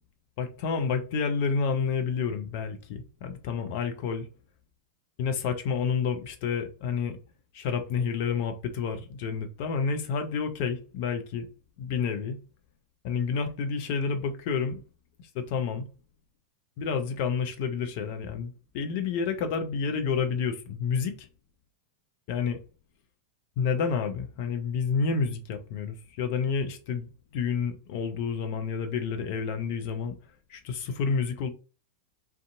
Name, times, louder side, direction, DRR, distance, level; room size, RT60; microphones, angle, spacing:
voice 1, 0.4-4.3 5.2-7.2 7.5-11.5 11.8-12.4 13.0-14.8 15.3-15.9 16.8-21.3 22.3-22.6 23.6-30.1 30.5-31.5, left 5 dB, 45° left, 0.5 m, -29 dB
2.5 x 2.3 x 2.5 m
figure-of-eight pair, 90°, 0 cm